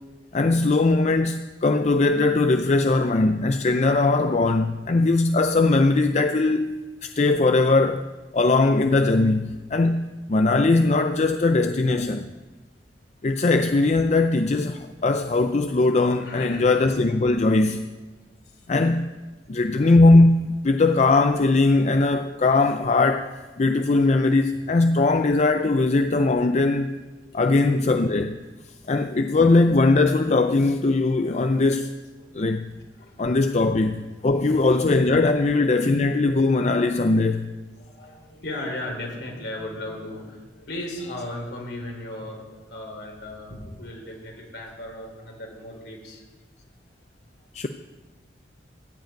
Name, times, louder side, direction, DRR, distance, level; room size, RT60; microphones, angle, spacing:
voice 1, 0.3-6.7 7.0-12.3 13.2-17.9 18.7-19.1 19.5-26.9 27.3-28.4 28.9-31.9 32.3-32.7 33.2-37.6 47.5-47.7, left 3 dB, 40° left, 0.4 m, -20 dB
voice 2, 16.2-16.7 18.5-18.7 28.8-28.9 32.2-32.4 33.0-33.7 34.2-34.7 37.3-37.4 37.8-46.2, left 1 dB, 70° left, 3.6 m, -37 dB
14.0 x 5.2 x 8.9 m
head